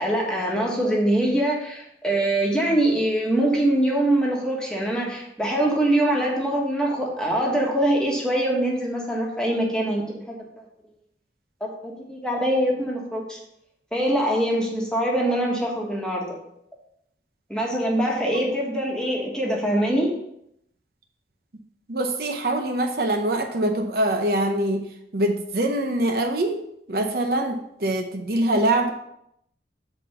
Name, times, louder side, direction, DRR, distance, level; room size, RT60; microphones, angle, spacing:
voice 1, 0.0-10.0 11.6-13.4 13.9-16.4 17.5-20.2, right 1 dB, 5° left, -2 dB, 1.5 m, -23 dB
voice 2, 21.9-24.8 25.1-26.6 26.9-28.9, right 1 dB, 55° right, 4 dB, 0.7 m, -24 dB
7.9 x 4.2 x 5.4 m, 0.77 s
head